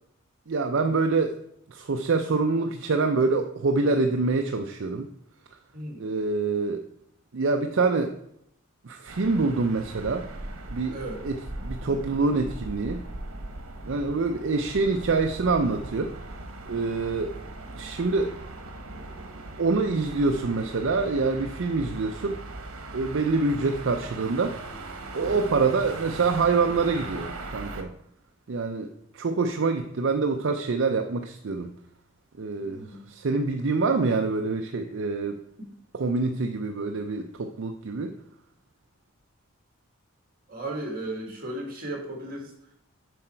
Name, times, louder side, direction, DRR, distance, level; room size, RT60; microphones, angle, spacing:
voice 1, 0.5-1.3 1.7-5.1 6.0-6.8 7.3-8.1 8.8-10.3 10.7-10.9 11.2-11.4 11.6-13.0 13.8-16.1 16.7-17.3 17.7-18.3 19.6-22.4 22.9-24.6 25.1-27.9 28.5-31.7 32.4-35.4 35.9-38.1, right 3 dB, 60° right, 5 dB, 0.5 m, -26 dB
voice 2, 5.7-6.0 10.9-11.2 13.8-14.1 23.4-23.7 25.2-25.4 32.6-33.1 35.6-35.7 40.5-42.5, right 1 dB, 40° right, 1 dB, 2.0 m, -36 dB
sound 1, 9.1-27.8, right 2 dB, 85° right, 1.0 m, -39 dB
7.8 x 5.5 x 4.4 m, 0.75 s
head